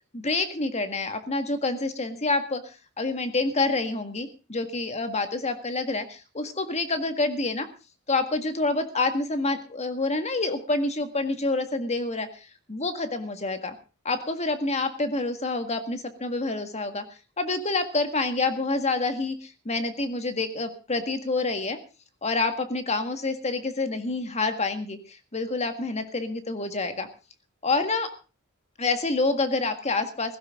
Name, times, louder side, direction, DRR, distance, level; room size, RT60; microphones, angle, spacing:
voice 1, 0.1-7.7 8.1-12.4 12.7-13.8 14.1-17.0 17.4-21.8 22.2-27.1 27.6-28.1 28.8-30.4, left 3 dB, 30° left, 8 dB, 1.8 m, -27 dB
16.5 x 15.5 x 3.7 m, 0.34 s
head